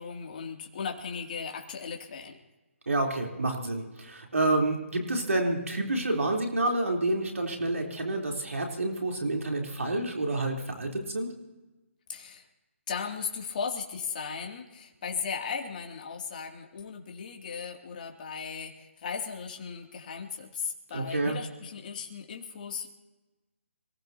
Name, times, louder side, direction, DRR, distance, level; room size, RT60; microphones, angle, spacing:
voice 1, 0.0-2.4 12.1-12.4 12.9-22.9, left 6 dB, 40° left, 2 dB, 2.8 m, -37 dB
voice 2, 2.9-11.3 20.9-21.4, right 2 dB, 90° right, 1 dB, 3.8 m, -29 dB
27.0 x 16.0 x 2.9 m, 1.1 s
hypercardioid pair, 155°, 7 cm